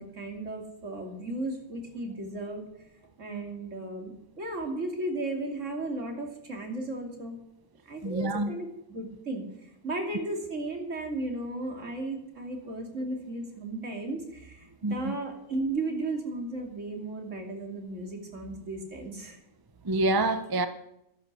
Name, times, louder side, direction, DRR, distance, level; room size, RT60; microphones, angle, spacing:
voice 1, 0.0-2.9 3.2-7.4 7.8-19.4, right 2 dB, 55° right, 3.1 m, -35 dB
voice 2, 8.0-8.5 14.8-15.2 19.8-20.7, right 2 dB, 25° right, 0.5 m, -27 dB
11.5 x 11.5 x 6.8 m
omnidirectional pair, 1.5 m